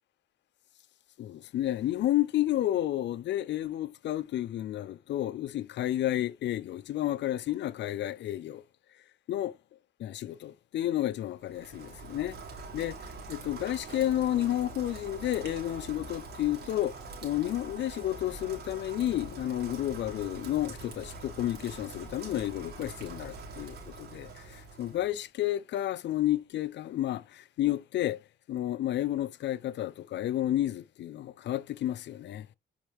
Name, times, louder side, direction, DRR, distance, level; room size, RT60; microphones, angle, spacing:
voice 1, 1.2-8.6 9.3-9.5 10.0-12.4 12.7-13.0 13.3-17.0 17.2-24.3 24.8-28.2 28.5-32.5, left 13 dB, 65° left, 0.5 m, -31 dB
Rain, 11.4-25.2, right 3 dB, 55° right, 2.4 m, -44 dB
7.3 x 4.4 x 3.0 m
cardioid pair, 90°, 20 cm